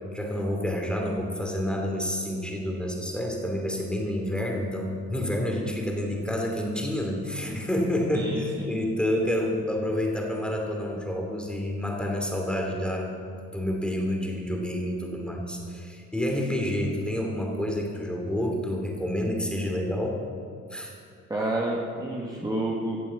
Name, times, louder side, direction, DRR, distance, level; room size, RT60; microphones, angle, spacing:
voice 1, 0.1-20.2 20.7-20.9, left 1 dB, 5° left, 0 dB, 2.9 m, -29 dB
voice 2, 8.1-8.8 21.3-23.0, right 1 dB, 15° right, -3 dB, 1.8 m, -29 dB
15.5 x 7.3 x 8.3 m, 2.2 s
cardioid pair, 105°, 30 cm